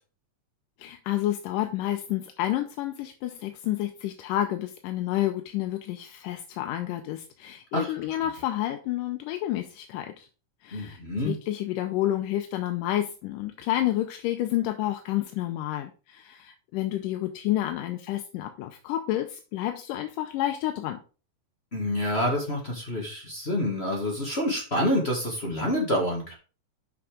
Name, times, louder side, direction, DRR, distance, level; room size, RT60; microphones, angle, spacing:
voice 1, 0.8-10.3 10.6-21.0, left 13 dB, 85° left, 6 dB, 2.3 m, -30 dB
voice 2, 10.7-11.3 21.7-26.3, left 1 dB, 25° left, -1 dB, 1.5 m, -27 dB
7.0 x 6.1 x 5.0 m, 0.35 s
omnidirectional pair, 3.7 m